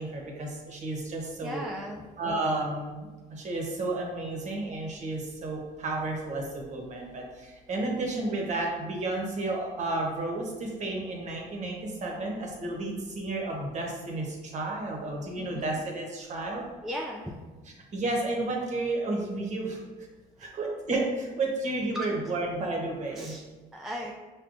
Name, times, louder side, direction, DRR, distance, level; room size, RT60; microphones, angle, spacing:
voice 1, 0.0-1.6 2.2-16.6 17.9-19.8 20.4-23.3, right 2 dB, 45° right, 0 dB, 0.9 m, -32 dB
voice 2, 1.4-2.1 15.4-15.8 16.8-17.3 20.4-20.5 21.9-22.1 23.1-23.4 23.7-24.1, equal, ahead, -2 dB, 0.3 m, -37 dB
6.1 x 2.2 x 2.5 m, 1.3 s
cardioid pair, 110°, 17 cm